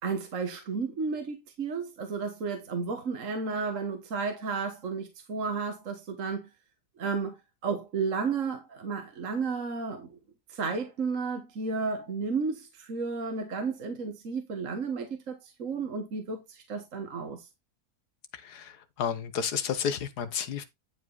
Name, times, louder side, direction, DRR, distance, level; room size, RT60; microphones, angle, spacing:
voice 1, 0.0-6.5 7.0-7.4 7.6-10.2 10.5-17.5, right 4 dB, 55° right, 1.7 m, -32 dB
voice 2, 18.3-20.6, left 7 dB, 85° left, 1.7 m, -32 dB
11.0 x 5.0 x 4.0 m
omnidirectional pair, 1.7 m